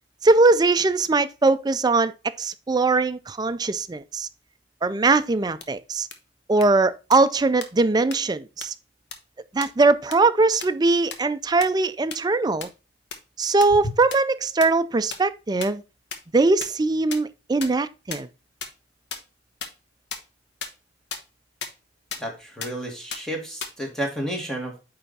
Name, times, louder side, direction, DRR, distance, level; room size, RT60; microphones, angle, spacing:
voice 1, 0.2-2.1 2.4-4.3 4.8-6.1 6.5-8.7 9.5-12.7 13.4-15.8 16.3-18.3, right 3 dB, 20° right, 0.4 m, -21 dB
sound 1, 5.6-5.7 6.1-6.2 6.6-6.7 7.1-7.2 7.6-7.7 8.1-8.2 8.6-8.7 9.1-9.2 9.6-9.7 10.1-10.2 10.6-10.7 11.1-11.2 11.6-11.7 12.1-12.2 12.6-12.7 13.1-13.2 13.6-13.7 14.1-14.2 14.6-14.7 15.1-15.2 15.6-15.7 16.1-16.2 16.6-16.7 17.1-17.2 17.6-17.7 18.1-18.2 18.6-18.7 19.1-19.2 19.6-19.7 20.1-20.2 20.6-20.7 21.1-21.2 21.6-21.7 22.1-22.2 22.6-22.7 23.1-23.2 23.6-23.7, left 6 dB, 65° left, 1.1 m, -31 dB
voice 2, 22.2-24.8, equal, 5° left, 1.8 m, -31 dB
8.6 x 3.4 x 4.0 m
head